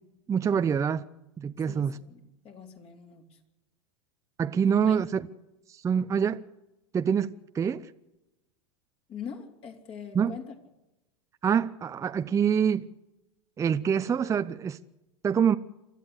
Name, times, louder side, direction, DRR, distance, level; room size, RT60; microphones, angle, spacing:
voice 1, 0.3-1.1 1.4-2.0 4.4-5.2 5.7-6.4 6.9-7.9 10.1-10.3 11.4-12.9 13.6-14.8 15.2-15.6, right 7 dB, 20° right, 0.7 m, -25 dB
voice 2, 1.7-3.4 4.8-5.0 9.1-10.5, left 7 dB, 40° left, 3.8 m, -43 dB
28.5 x 12.5 x 8.1 m
hypercardioid pair, 95°, 16 cm